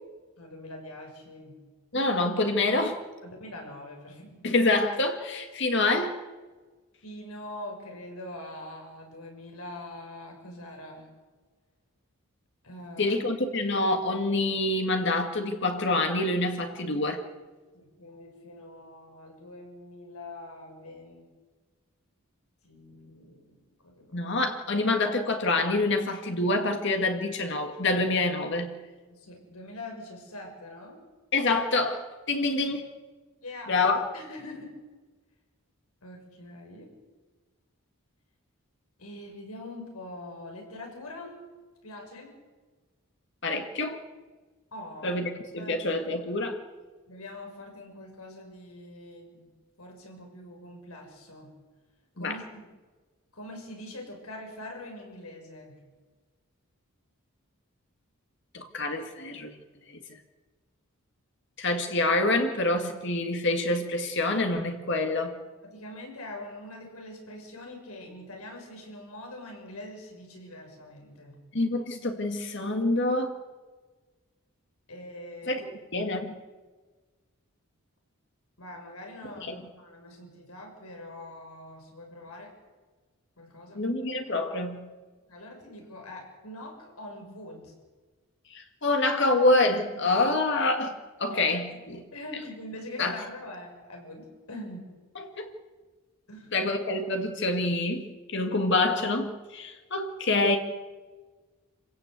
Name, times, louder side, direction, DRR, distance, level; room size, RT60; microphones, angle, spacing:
voice 1, 0.4-1.5 3.2-4.4 7.0-11.1 12.6-13.2 17.7-21.3 22.6-23.6 23.8-24.3 29.1-31.0 33.4-33.7 34.1-34.7 36.0-36.9 39.0-41.3 41.8-42.4 44.7-45.2 45.6-45.8 47.1-49.5 49.8-51.5 52.2-52.6 53.3-55.8 65.6-71.4 74.9-75.7 78.6-82.5 83.4-83.8 85.3-87.7 91.3-91.7 92.1-94.9 96.3-96.5, left 1 dB, 90° left, 2 dB, 6.7 m, -43 dB
voice 2, 1.9-3.0 4.4-6.2 13.0-17.2 24.1-28.7 31.3-32.9 33.7-34.0 43.4-44.0 45.0-46.6 52.2-52.4 58.5-59.6 60.1-60.2 61.6-65.3 71.5-73.3 75.5-75.6 75.9-76.3 79.5-79.6 83.7-84.8 88.5-92.0 93.0-93.2 95.2-95.5 96.5-100.6, left 2 dB, 55° left, 4 dB, 1.9 m, -26 dB
27.5 x 16.5 x 8.2 m, 1.3 s
head